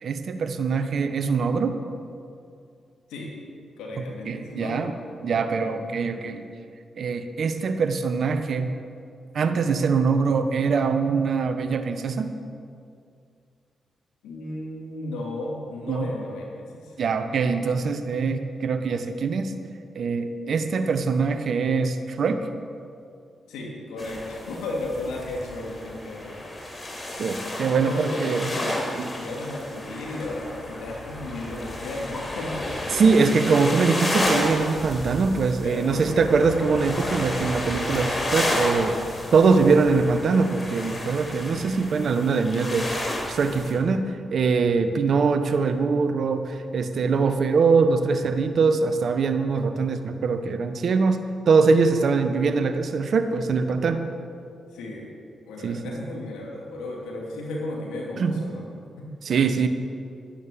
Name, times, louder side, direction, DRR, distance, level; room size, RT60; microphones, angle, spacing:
voice 1, 0.0-1.8 4.0-4.9 5.2-6.4 7.0-8.7 9.3-12.3 15.9-16.1 17.0-19.5 19.9-22.5 27.2-28.5 28.9-29.1 32.9-39.0 39.3-42.9 43.3-54.1 55.6-55.9 58.2-58.4 59.2-59.7, right 4 dB, 65° right, 8 dB, 1.1 m, -23 dB
voice 2, 3.8-4.8 14.2-17.0 23.5-26.9 27.7-32.5 35.6-36.1 54.7-55.1 55.4-58.7 59.0-59.1, left 2 dB, 85° left, -2 dB, 2.8 m, -34 dB
sound 1, 24.0-43.7, left 1 dB, 35° left, 4.2 m, -31 dB
11.5 x 11.0 x 7.0 m, 2.4 s
hypercardioid pair, 40°, 0 cm